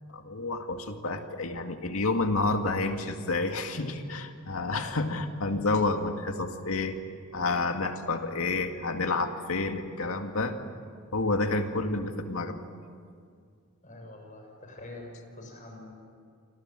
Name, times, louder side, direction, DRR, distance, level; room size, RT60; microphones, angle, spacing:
voice 1, 0.1-7.0 7.3-10.5 11.1-12.7, left 3 dB, 70° left, 5 dB, 2.2 m, -29 dB
voice 2, 13.8-15.9, left 2 dB, 35° left, 2 dB, 7.2 m, -45 dB
28.5 x 26.0 x 7.7 m, 2.2 s
head